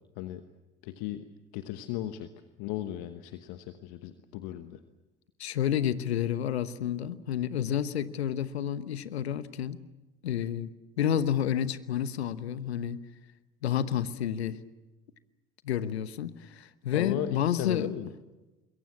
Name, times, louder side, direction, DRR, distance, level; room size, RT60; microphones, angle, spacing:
voice 1, 0.8-1.3 1.5-2.3 2.6-4.8 16.9-18.1, left 13 dB, 70° left, 9 dB, 1.3 m, -36 dB
voice 2, 5.4-9.8 10.2-10.7 11.0-13.0 13.6-14.6 15.6-17.9, left 9 dB, 85° left, 15 dB, 1.1 m, -30 dB
26.0 x 22.5 x 7.3 m, 1.1 s
hypercardioid pair, 60°, 31 cm